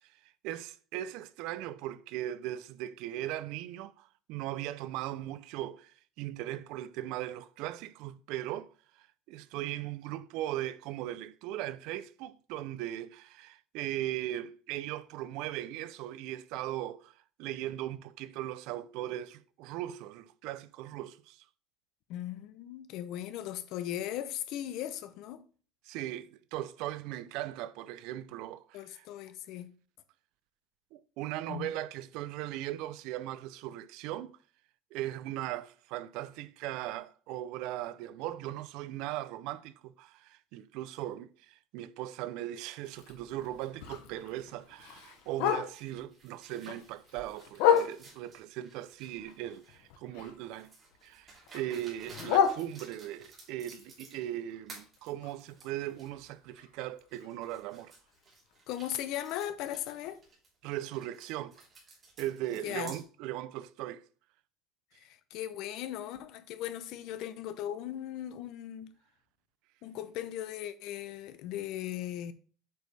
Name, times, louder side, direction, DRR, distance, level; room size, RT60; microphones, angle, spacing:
voice 1, 0.4-17.1 17.4-21.4 25.9-29.1 30.9-34.3 34.9-50.7 51.0-57.9 60.6-61.5 62.2-64.0, right 13 dB, 65° right, 0.4 m, -38 dB
voice 2, 22.1-25.4 28.7-29.7 31.5-31.7 58.7-60.2 62.6-62.9 65.0-68.9 69.8-72.3, left 12 dB, 55° left, 0.7 m, -38 dB
Bark, 42.8-46.0 46.4-48.3 48.8-50.6 50.9-53.2 53.7-57.6 57.9-58.0 58.3-58.7 59.1-59.2 59.6-59.7 60.2-60.3, left 8 dB, 75° left, 1.0 m, -33 dB
sound 1, 45.1-49.9 50.6-54.4 54.7-56.1 56.6-56.7 57.1-63.0, right 3 dB, 25° right, 3.0 m, -55 dB
7.8 x 5.1 x 3.3 m
cardioid pair, 165°, 0 cm